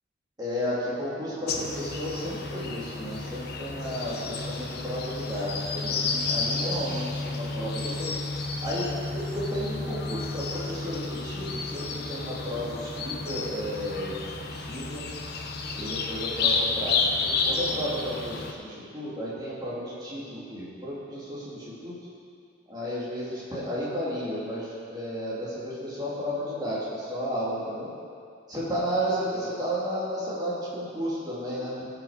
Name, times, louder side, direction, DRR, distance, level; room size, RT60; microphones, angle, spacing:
voice 1, 0.4-8.1 8.6-14.2 14.5-15.0 15.7-21.9 22.7-27.9 28.5-31.9, equal, 20° right, -9 dB, 2.9 m, -33 dB
sound 1, 1.5-18.5, left 4 dB, 55° left, 0.8 m, -31 dB
17.0 x 6.1 x 5.1 m, 2.3 s
head